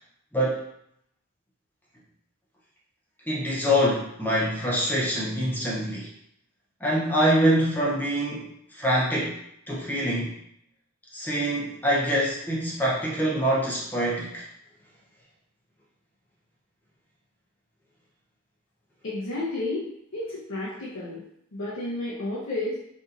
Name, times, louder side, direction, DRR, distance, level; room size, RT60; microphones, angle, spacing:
voice 1, 0.3-0.6 3.3-6.1 6.8-9.4 9.7-10.4 11.1-14.4, equal, 10° left, -6 dB, 0.6 m, -25 dB
voice 2, 19.0-19.8 20.1-21.2 21.5-22.8, left 2 dB, 65° left, -8 dB, 0.7 m, -31 dB
3.9 x 2.7 x 2.5 m, 0.74 s
head